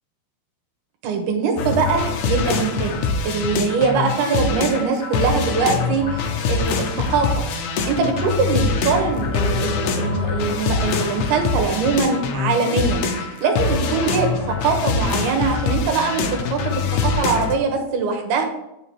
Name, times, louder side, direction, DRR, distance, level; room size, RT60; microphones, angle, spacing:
voice 1, 1.0-2.9 3.2-18.4, right 5 dB, 75° right, 3 dB, 3.2 m, -22 dB
sound 1, 1.6-17.6, left 4 dB, 70° left, 1.9 m, -24 dB
sound 2, 3.4-3.7 4.0-4.7 5.0-5.7 6.0-6.7 7.0-7.7 8.0-8.7 9.0-9.7 10.0-10.7 11.0-11.7 12.0-12.7 13.0-13.7 14.0-14.7 15.0-15.7 16.0-16.7 17.0-17.7, equal, 50° right, 2.1 m, -41 dB
9.0 x 6.1 x 4.6 m, 0.89 s
omnidirectional pair, 4.6 m